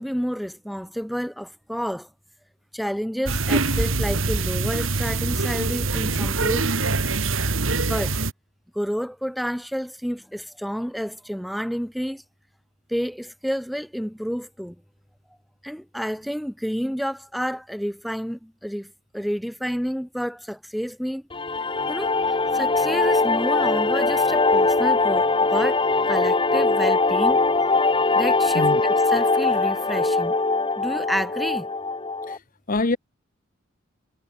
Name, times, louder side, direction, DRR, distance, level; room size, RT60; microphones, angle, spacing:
voice 1, 0.0-2.1 2.7-6.7 7.9-8.2 8.7-12.2 12.9-14.8 15.6-21.2 21.9-25.8 26.1-27.4 28.2-30.4 30.8-31.7, equal, ahead, 7.1 m, -30 dB
sound 1, 3.3-8.3, right 3 dB, 85° right, 2.6 m, -24 dB
sound 2, 21.3-32.4, left 3 dB, 25° left, 2.2 m, -21 dB
voice 2, 28.5-28.8 32.3-32.4 32.7-33.0, left 2 dB, 45° left, 1.2 m, -24 dB
head